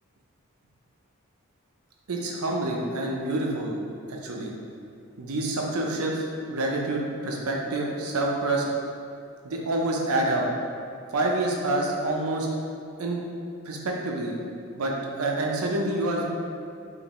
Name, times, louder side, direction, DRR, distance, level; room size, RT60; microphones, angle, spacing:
voice 1, 2.1-3.8 4.1-4.5 5.2-8.6 9.4-10.5 11.1-12.5 13.0-13.2 13.6-14.3 14.7-16.2, right 2 dB, 85° right, 0 dB, 0.6 m, -27 dB
4.9 x 2.6 x 3.1 m, 2.5 s
head